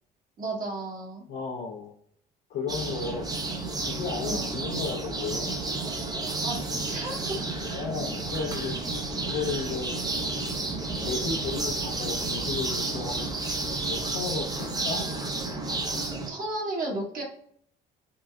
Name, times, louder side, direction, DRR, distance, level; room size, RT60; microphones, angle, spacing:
voice 1, 0.4-1.2 4.2-4.5 6.4-7.6 16.3-17.2, right 2 dB, 50° right, -1 dB, 1.5 m, -33 dB
voice 2, 1.3-1.9 2.5-3.3 3.8-5.6 7.7-8.7 9.2-9.9 11.0-13.3 13.9-15.1, left 5 dB, 80° left, -3 dB, 0.7 m, -34 dB
sound 1, 2.7-16.3, right 3 dB, 20° right, 0.7 m, -31 dB
sound 2, 8.2-14.0, right 1 dB, 85° right, 1.1 m, -44 dB
3.9 x 2.3 x 3.3 m, 0.63 s
cardioid pair, 110°, 17 cm